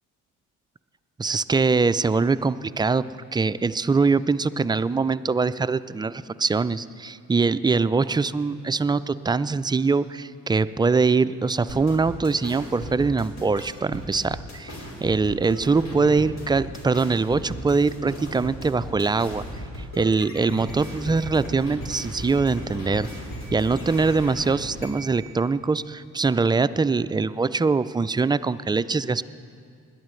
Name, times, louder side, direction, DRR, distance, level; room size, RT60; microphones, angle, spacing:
voice 1, 1.2-3.1 3.3-19.4 20.0-23.1 23.5-29.2, right 4 dB, 15° right, 14 dB, 0.3 m, -23 dB
sound 1, 11.7-25.2, equal, 50° left, 4.0 m, -36 dB
20.5 x 12.0 x 3.2 m, 2.3 s
hypercardioid pair, 55°, 36 cm